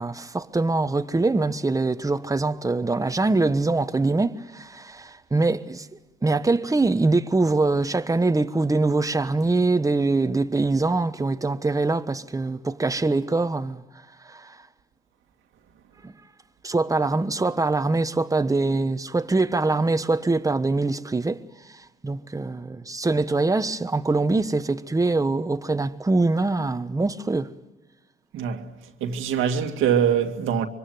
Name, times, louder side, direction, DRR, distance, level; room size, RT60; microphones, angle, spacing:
voice 1, 0.0-5.9 6.2-13.8 14.2-14.6 16.0-16.1 16.6-21.4 21.7-27.5, right 3 dB, 15° right, 1.2 m, -23 dB
voice 2, 28.3-28.7 29.0-30.7, right 8 dB, 85° right, 2.2 m, -23 dB
25.5 x 24.5 x 9.4 m
cardioid pair, 90°, 20 cm